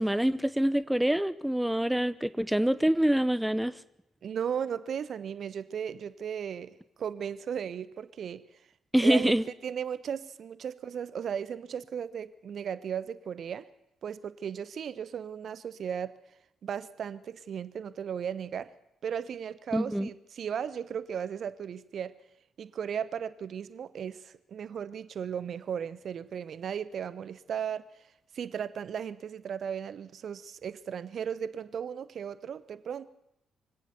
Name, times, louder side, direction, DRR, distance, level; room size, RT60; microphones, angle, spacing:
voice 1, 0.0-3.7 8.9-9.4 19.7-20.1, right 1 dB, 5° right, 17 dB, 0.8 m, -25 dB
voice 2, 4.2-8.4 9.0-9.4 9.6-13.6 14.0-16.1 16.6-18.7 19.0-22.1 22.6-27.9 28.3-33.1, right 8 dB, 50° right, 17 dB, 0.9 m, -36 dB
24.0 x 17.0 x 7.0 m, 0.82 s
figure-of-eight pair, 40°, 0 cm